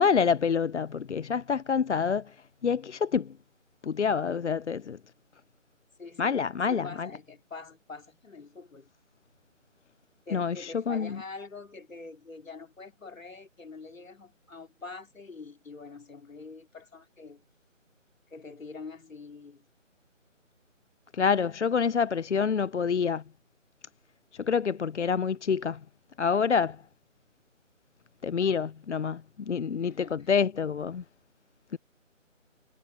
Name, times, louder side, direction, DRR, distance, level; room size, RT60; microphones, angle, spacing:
voice 1, 0.0-2.4 2.6-3.3 3.8-5.0 6.2-7.1 10.3-11.2 21.1-23.2 24.3-25.8 26.2-26.8 28.2-31.0 31.7-31.8, left 6 dB, 60° left, 0.6 m, -27 dB
voice 2, 6.0-6.4 6.7-8.9 10.2-17.4 18.3-19.7 29.8-30.3, left 4 dB, 80° left, 3.1 m, -45 dB
figure-of-eight pair, 170°, 39 cm